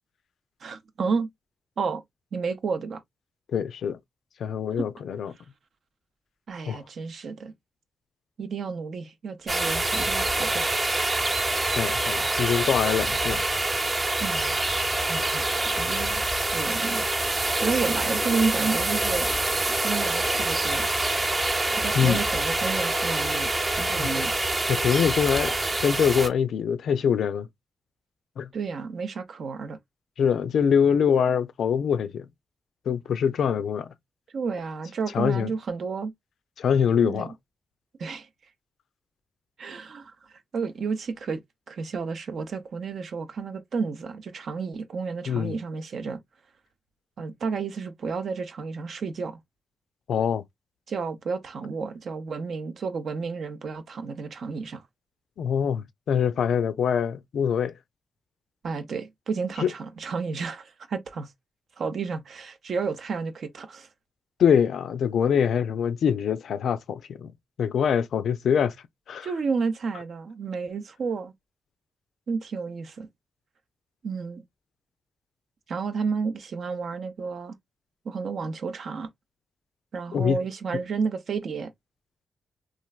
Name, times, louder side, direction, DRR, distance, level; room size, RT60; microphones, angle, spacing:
voice 1, 0.6-1.3 1.8-2.0 2.3-3.0 4.8-4.9 6.5-7.5 8.4-10.7 13.1-13.2 14.2-14.6 15.1-15.4 15.8-16.3 16.5-17.1 17.6-19.3 19.8-20.9 21.8-24.3 28.5-29.8 34.3-36.1 37.0-37.3 38.0-38.3 39.6-41.4 41.7-46.2 47.2-49.4 50.9-54.8 58.6-61.3 61.8-63.9 69.2-71.3 72.3-73.1 74.0-74.4 75.7-77.6 78.0-79.1 79.9-81.7, right 5 dB, 70° right, 0.6 m, -31 dB
voice 2, 3.5-4.0 4.4-5.3 6.7-6.8 11.7-13.4 22.0-22.2 23.9-24.1 24.7-25.5 25.8-27.5 28.4-28.5 30.2-32.3 32.9-33.9 35.1-35.5 36.6-37.3 45.3-45.6 50.1-50.4 55.4-57.7 59.6-59.7 64.4-67.3 67.6-68.7 69.1-69.3 80.1-80.4, left 7 dB, 80° left, 0.3 m, -24 dB
sound 1, 9.5-26.3, right 2 dB, 40° right, 0.7 m, -26 dB
3.1 x 2.4 x 2.3 m
cardioid pair, 55°, 0 cm